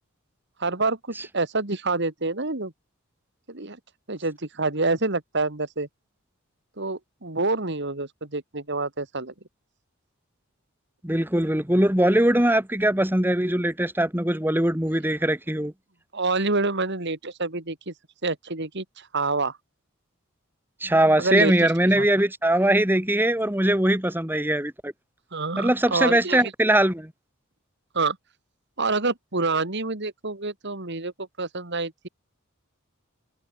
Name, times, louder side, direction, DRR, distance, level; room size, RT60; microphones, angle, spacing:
voice 1, 0.6-2.7 3.5-3.8 4.1-5.9 6.8-9.3 16.1-17.9 18.2-19.6 21.2-22.1 25.3-26.5 27.9-28.2 28.8-32.1, right 3 dB, 55° right, 2.7 m, -27 dB
voice 2, 11.0-15.7 20.8-24.9 25.6-27.1, right 1 dB, 10° right, 2.7 m, -21 dB
head